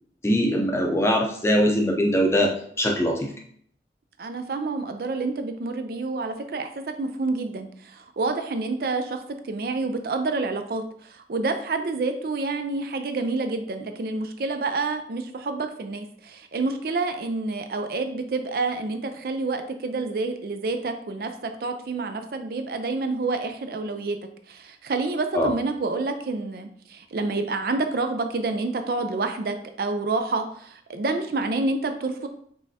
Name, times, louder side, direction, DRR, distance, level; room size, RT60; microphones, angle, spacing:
voice 1, 0.2-3.3 25.3-25.5, equal, 15° left, 1 dB, 0.6 m, -22 dB
voice 2, 4.2-9.2 9.4-24.2 24.5-32.3, right 3 dB, 55° right, 7 dB, 0.4 m, -28 dB
5.2 x 3.4 x 2.7 m, 0.63 s
head